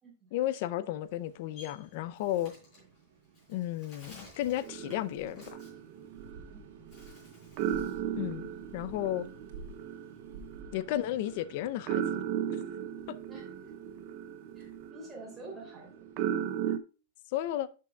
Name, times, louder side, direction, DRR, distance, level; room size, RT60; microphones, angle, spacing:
voice 1, 0.3-2.5 3.5-5.6 8.2-9.3 10.7-12.2 17.3-17.7, left 13 dB, 40° left, 0.4 m, -33 dB
Bird, 1.0-6.5 6.8-8.1 8.4-10.2, left 2 dB, 20° left, 4.5 m, -56 dB
sound 1, 1.0-16.3, right 4 dB, 70° right, 1.9 m, -54 dB
sound 2, 4.6-7.2 7.6-16.8, right 9 dB, 35° right, 0.5 m, -36 dB
voice 2, 13.3-13.7 14.5-15.9, right 2 dB, 5° right, 3.1 m, -49 dB
11.5 x 6.0 x 2.3 m
supercardioid pair, 180°, 0 cm